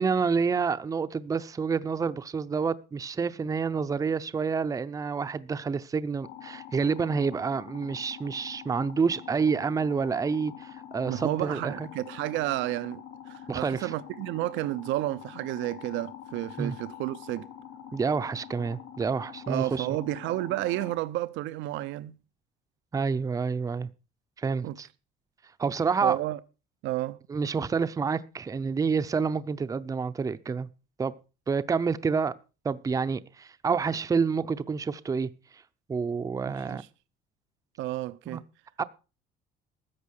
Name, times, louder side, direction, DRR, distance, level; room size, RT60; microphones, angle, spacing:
voice 1, 0.0-11.9 13.5-13.9 16.6-16.7 17.9-20.0 22.9-23.9 24.4-24.9 25.6-26.2 27.3-30.7 31.0-31.1 31.5-32.3 32.6-35.3 35.9-36.8 38.3-38.4 38.8-38.9, right 5 dB, 20° right, 0.6 m, -28 dB
sound 1, 6.2-21.0, left 9 dB, 85° left, 2.6 m, -45 dB
voice 2, 11.0-17.5 19.5-22.2 24.6-24.8 26.0-26.4 26.8-27.2 36.4-36.9 37.8-38.4, right 16 dB, 85° right, 0.6 m, -31 dB
14.0 x 8.3 x 6.5 m
cardioid pair, 150°, 19 cm